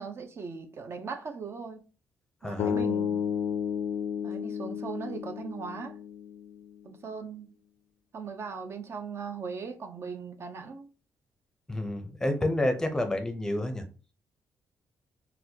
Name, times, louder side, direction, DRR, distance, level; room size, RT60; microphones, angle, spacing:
voice 1, 0.0-1.8 2.4-3.2 4.2-6.0 6.8-7.5 8.1-10.9, right 5 dB, 45° right, 0.5 m, -39 dB
voice 2, 2.4-2.8 11.7-13.8, left 1 dB, 10° left, 0.6 m, -29 dB
sound 1, 2.6-6.7, left 8 dB, 70° left, 0.4 m, -32 dB
4.0 x 2.2 x 2.7 m
cardioid pair, 110°, 6 cm